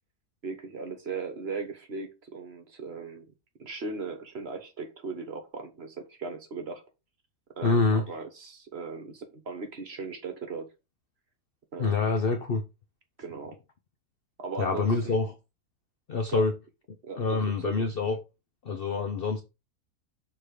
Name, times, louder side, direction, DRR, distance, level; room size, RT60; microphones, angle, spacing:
voice 1, 0.4-3.3 3.6-6.8 7.6-10.7 11.7-12.1 13.2-13.6 14.4-15.2 16.3-16.4 17.0-17.7, right 4 dB, 45° right, 1.3 m, -38 dB
voice 2, 7.6-8.0 11.8-12.6 14.6-15.3 16.1-16.5 17.2-18.2 18.6-19.4, left 4 dB, 50° left, 0.7 m, -26 dB
6.7 x 3.6 x 4.7 m
omnidirectional pair, 1.6 m